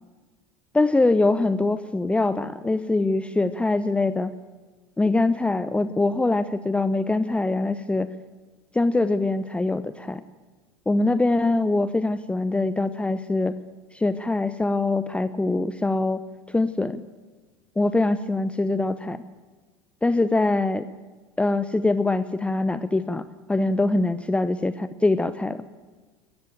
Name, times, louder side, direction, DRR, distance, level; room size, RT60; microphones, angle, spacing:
voice 1, 0.7-4.3 5.0-8.1 8.7-10.2 10.9-13.6 13.9-16.2 16.5-17.0 17.8-19.2 20.0-20.9 21.4-23.2 23.5-25.6, left 2 dB, 10° left, 13 dB, 0.7 m, -23 dB
21.0 x 14.0 x 9.1 m, 1.3 s
figure-of-eight pair, 75°, 13 cm